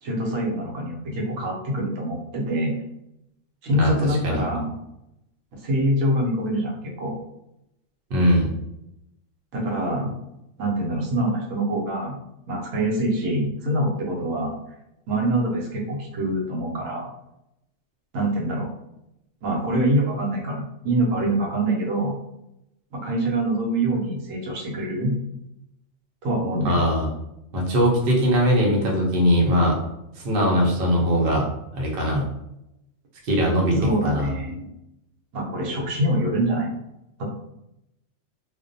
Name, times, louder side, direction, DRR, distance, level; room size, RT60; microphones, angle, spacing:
voice 1, 0.0-2.8 3.6-4.8 5.5-6.7 7.0-7.1 9.5-10.1 10.6-12.2 12.5-14.5 15.1-17.1 18.1-18.7 19.4-22.2 22.9-25.1 26.2-26.8 33.8-34.7 35.3-36.7 37.2-37.3, right 1 dB, 80° right, -1 dB, 1.0 m, -25 dB
voice 2, 3.8-4.4 8.1-8.5 26.6-27.1 27.5-29.8 30.2-31.5 31.7-32.3 33.2-34.3, equal, 55° right, -2 dB, 0.8 m, -21 dB
2.5 x 2.1 x 2.5 m, 0.84 s
omnidirectional pair, 1.4 m